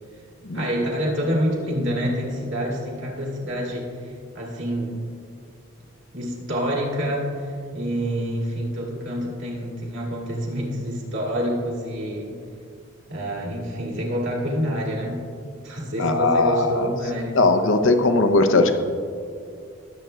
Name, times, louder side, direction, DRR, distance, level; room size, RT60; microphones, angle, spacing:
voice 1, 0.4-5.0 6.1-12.4 13.1-15.2 15.6-17.4, equal, 60° right, -3 dB, 2.1 m, -27 dB
voice 2, 16.0-16.9 17.3-18.8, left 3 dB, 65° left, 8 dB, 0.6 m, -19 dB
19.0 x 7.8 x 2.2 m, 2.3 s
head